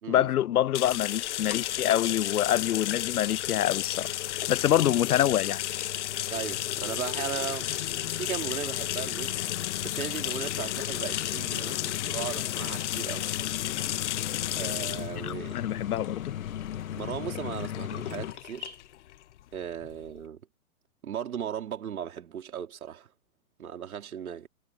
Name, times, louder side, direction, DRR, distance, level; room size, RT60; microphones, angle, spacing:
voice 1, 0.1-4.1 4.5-5.6 15.2-16.2, left 11 dB, 90° left, 0.7 m, -26 dB
sound 1, 0.7-20.2, left 14 dB, 55° left, 0.9 m, -33 dB
sound 2, 1.5-18.3, left 10 dB, 70° left, 1.7 m, -39 dB
voice 2, 6.3-9.4 9.8-13.3 14.6-15.6 17.0-18.8 19.5-20.4 21.0-23.1 23.6-24.5, right 9 dB, 75° right, 4.0 m, -37 dB
hypercardioid pair, 140°, 43 cm